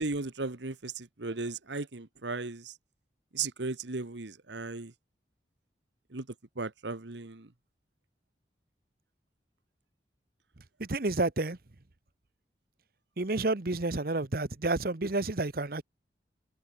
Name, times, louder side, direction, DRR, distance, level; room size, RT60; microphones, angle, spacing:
voice 1, 0.0-2.7 3.3-4.9 6.1-6.2 6.6-7.5, right 3 dB, 80° right, 1.4 m, -36 dB
voice 2, 10.8-11.6 13.2-15.8, right 2 dB, 55° right, 1.1 m, -30 dB
head